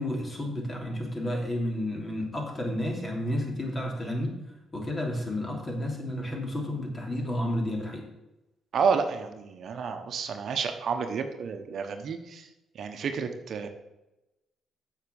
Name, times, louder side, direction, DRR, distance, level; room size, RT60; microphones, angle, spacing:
voice 1, 0.0-4.3 4.7-8.1, left 1 dB, 30° left, 0 dB, 3.1 m, -31 dB
voice 2, 8.7-12.5 12.7-13.7, right 5 dB, 60° right, 6 dB, 1.1 m, -30 dB
8.0 x 6.6 x 7.0 m, 0.96 s
cardioid pair, 90°, 0 cm